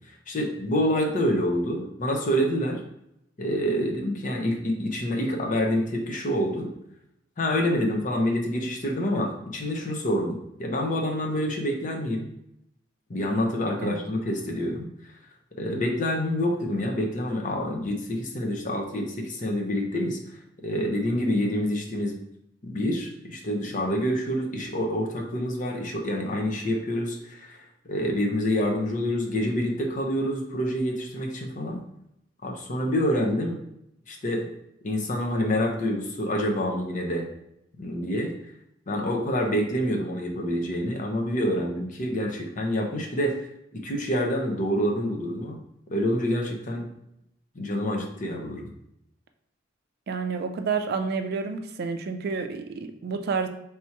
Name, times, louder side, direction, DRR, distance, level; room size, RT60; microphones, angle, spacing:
voice 1, 0.3-2.8 3.4-6.7 7.4-12.3 13.1-14.9 15.6-20.2 20.6-22.2 22.6-27.6 27.9-31.8 32.4-33.6 34.1-34.5 34.8-37.3 37.8-38.3 38.9-43.4 43.7-45.6 45.9-46.9 47.5-48.7, equal, 45° left, 1 dB, 0.8 m, -27 dB
voice 2, 50.1-53.5, right 5 dB, 55° right, 7 dB, 0.4 m, -29 dB
3.4 x 2.9 x 4.4 m, 0.80 s
head